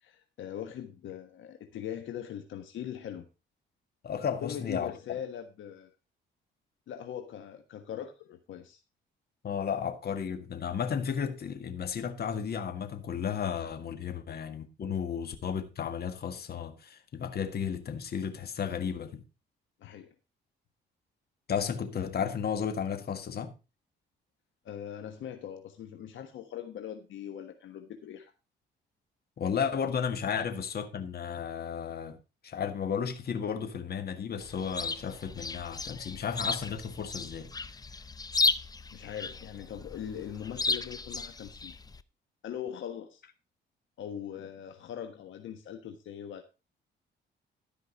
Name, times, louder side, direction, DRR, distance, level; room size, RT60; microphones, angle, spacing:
voice 1, 0.0-3.3 4.4-5.9 6.9-8.8 19.8-20.1 24.6-28.3 38.9-41.7 42.4-43.2 44.0-46.5, left 9 dB, 75° left, 1.3 m, -41 dB
voice 2, 4.0-4.9 9.4-19.2 21.5-23.5 29.4-32.2 32.4-37.5, left 7 dB, 55° left, 1.7 m, -33 dB
Chirp tweet, 34.4-42.0, left 3 dB, 20° left, 0.6 m, -34 dB
13.0 x 5.2 x 5.2 m
cardioid pair, 90°, 20 cm